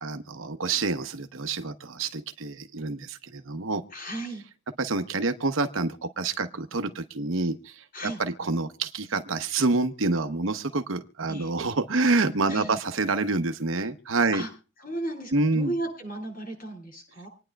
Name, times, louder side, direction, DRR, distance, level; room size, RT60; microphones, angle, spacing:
voice 1, 0.0-3.8 4.8-14.4 15.3-15.7, right 3 dB, 75° right, 9 dB, 0.9 m, -27 dB
voice 2, 3.9-4.4 7.9-8.2 11.3-11.5 12.5-12.8 14.3-14.5 14.8-17.3, right 1 dB, 45° left, 2 dB, 8.0 m, -35 dB
27.0 x 9.8 x 2.3 m, 0.35 s
head